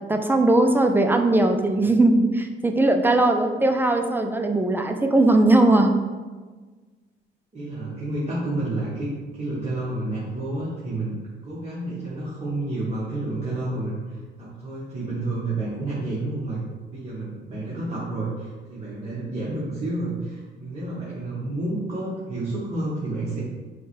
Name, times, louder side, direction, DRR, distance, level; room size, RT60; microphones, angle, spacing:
voice 1, 0.1-5.9, right 2 dB, 10° right, 5 dB, 0.3 m, -19 dB
voice 2, 7.5-11.1 11.4-16.6 16.9-23.4, right 2 dB, 30° right, -8 dB, 1.0 m, -30 dB
4.7 x 2.2 x 3.0 m, 1.3 s
cardioid pair, 90°, 20 cm